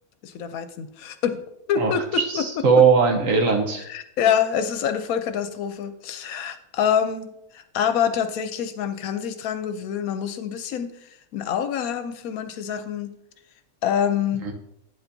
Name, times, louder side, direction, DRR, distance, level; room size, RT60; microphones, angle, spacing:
voice 1, 0.2-2.0 2.3-2.4 3.9-10.9 11.3-13.1 13.8-14.4, left 8 dB, 75° left, 10 dB, 1.0 m, -26 dB
voice 2, 1.8-3.8 14.4-14.5, right 5 dB, 65° right, 3 dB, 1.3 m, -19 dB
9.0 x 7.1 x 2.7 m, 0.77 s
omnidirectional pair, 1.5 m